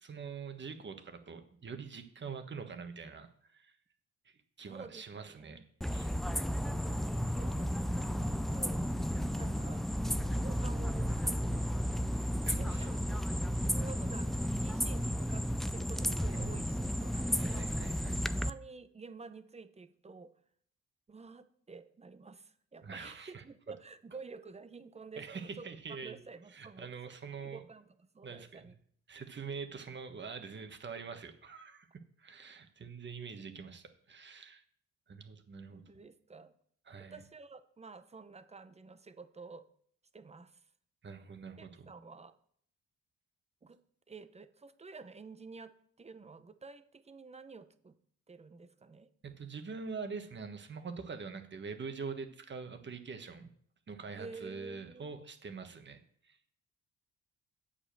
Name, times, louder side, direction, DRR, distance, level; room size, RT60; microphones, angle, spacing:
voice 1, 0.0-3.8 4.2-6.2 9.4-9.7 12.4-13.3 16.3-16.8 17.4-18.2 22.8-23.4 25.2-26.2 26.5-27.6 28.2-28.7 29.1-31.9 32.2-34.6 35.1-35.8 36.9-37.2 41.0-41.9 49.2-53.5 53.9-56.0 56.2-56.4, right 5 dB, 40° right, 7 dB, 1.4 m, -45 dB
voice 2, 4.7-5.7 6.3-8.8 9.3-9.8 10.3-12.0 12.4-17.7 18.3-20.3 21.1-26.9 27.4-28.7 35.7-36.5 37.0-39.7 40.1-40.6 41.6-42.4 43.6-43.8 44.1-48.0 48.3-49.1 54.1-55.2, right 4 dB, 20° right, 11 dB, 0.7 m, -50 dB
sound 1, 5.8-18.5, equal, ahead, 0.3 m, -33 dB
8.4 x 5.1 x 6.8 m, 0.63 s
cardioid pair, 90°, 30 cm